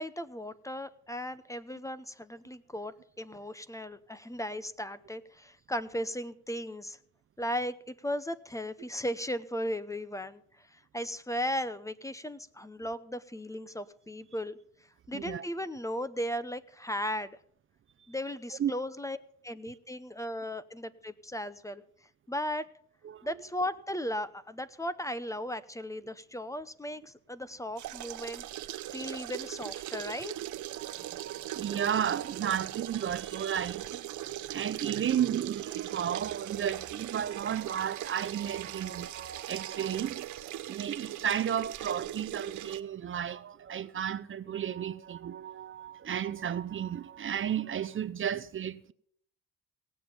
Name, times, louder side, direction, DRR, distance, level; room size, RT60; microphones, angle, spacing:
voice 1, 0.0-7.0 7.4-14.6 15.1-17.4 18.1-19.2 19.4-21.8 22.3-22.7 23.2-30.3, equal, 10° left, 0.7 m, -36 dB
voice 2, 15.1-15.4 18.6-18.7 23.0-23.2 28.9-29.0 30.8-34.0 34.5-40.3 40.7-48.9, right 9 dB, 45° right, 0.6 m, -33 dB
sound 1, 27.8-42.8, right 13 dB, 75° right, 0.9 m, -40 dB
18.0 x 7.7 x 6.9 m
cardioid pair, 90°, 30 cm